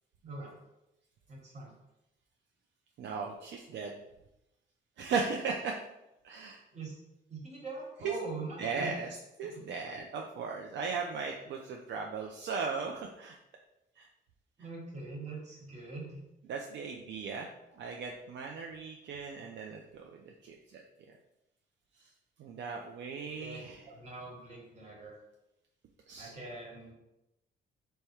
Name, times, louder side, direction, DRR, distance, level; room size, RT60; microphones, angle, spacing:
voice 1, 1.3-1.7 6.7-7.0 7.3-8.9 9.4-9.6 14.6-16.2 23.3-25.1 26.2-26.9, right 3 dB, 35° right, -2 dB, 1.3 m, -43 dB
voice 2, 3.0-3.9 5.0-5.8 6.2-6.6 8.0-8.2 8.6-13.4 14.0-14.1 16.4-20.8 21.1-21.2 22.0-22.1 22.4-23.9 26.1-26.3, right 5 dB, 65° right, 1 dB, 0.4 m, -37 dB
3.4 x 2.1 x 4.3 m, 0.90 s
cardioid pair, 90°, 20 cm